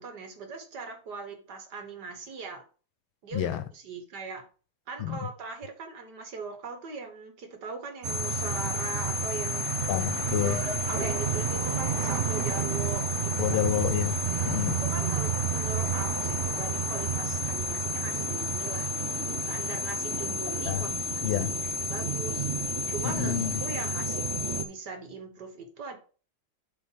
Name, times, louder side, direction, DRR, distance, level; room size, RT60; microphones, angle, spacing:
voice 1, 0.0-2.6 3.2-4.4 4.9-9.7 10.4-13.6 14.9-18.9 19.5-21.5 21.8-23.4 23.6-24.2 24.6-26.0, right 4 dB, 55° right, 1.8 m, -40 dB
voice 2, 3.3-3.7 5.0-5.3 9.9-10.6 13.4-14.2 14.4-14.8 20.7-20.9 21.2-21.5 23.0-23.6, left 11 dB, 90° left, 1.5 m, -29 dB
sound 1, 8.0-24.6, right 2 dB, 90° right, 0.6 m, -30 dB
7.6 x 3.9 x 5.6 m
omnidirectional pair, 2.2 m